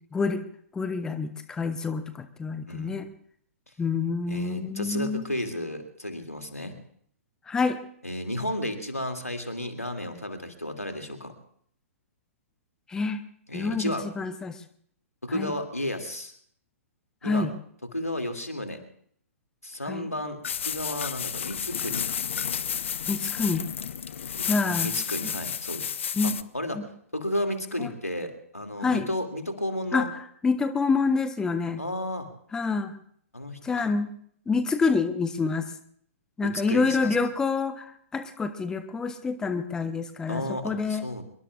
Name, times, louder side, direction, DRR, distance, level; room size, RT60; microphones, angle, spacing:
voice 1, 0.7-3.1 3.8-5.2 7.5-7.8 12.9-13.2 13.5-14.6 15.3-15.5 17.2-17.5 19.9-20.1 23.1-23.6 24.4-24.9 26.2-26.3 26.7-26.8 27.8-27.9 28.8-29.1 29.9-30.1 30.4-31.8 32.5-32.9 33.6-34.1 34.5-35.7 36.4-41.0, left 4 dB, 10° left, 11 dB, 0.7 m, -27 dB
voice 2, 2.7-3.0 4.3-6.8 8.0-11.3 13.5-14.1 15.2-16.3 17.2-17.5 17.9-18.8 19.6-22.3 24.3-25.9 26.2-26.8 27.1-30.1 31.8-32.3 33.3-33.9 36.4-37.2 40.3-41.2, left 1 dB, 85° left, 4 dB, 2.5 m, -33 dB
sound 1, 20.4-26.4, left 8 dB, 55° left, 0.6 m, -31 dB
25.5 x 22.5 x 2.4 m, 0.62 s
figure-of-eight pair, 120°, 8 cm